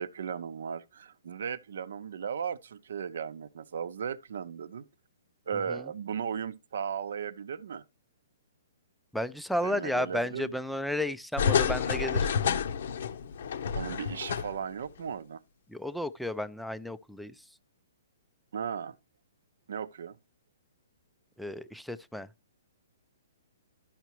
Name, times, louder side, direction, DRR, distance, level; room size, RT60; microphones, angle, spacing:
voice 1, 0.0-4.9 5.5-7.8 9.6-10.5 13.7-15.4 18.5-19.0 19.7-20.2, right 7 dB, 70° right, 0.6 m, -36 dB
voice 2, 9.1-12.3 15.7-17.5 21.4-22.3, left 1 dB, ahead, 0.3 m, -33 dB
sound 1, 11.4-14.8 15.1-15.2, left 7 dB, 65° left, 0.7 m, -29 dB
12.0 x 5.7 x 3.0 m
hypercardioid pair, 145°, 0 cm